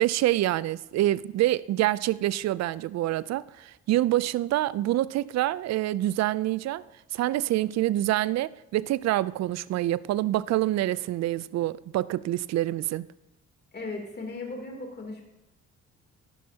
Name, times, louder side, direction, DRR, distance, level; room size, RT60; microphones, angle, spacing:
voice 1, 0.0-6.8 7.1-13.1, right 15 dB, 60° right, 0.4 m, -26 dB
voice 2, 13.7-15.2, left 3 dB, 35° left, 2.9 m, -37 dB
12.0 x 11.0 x 2.8 m
cardioid pair, 90°, 30 cm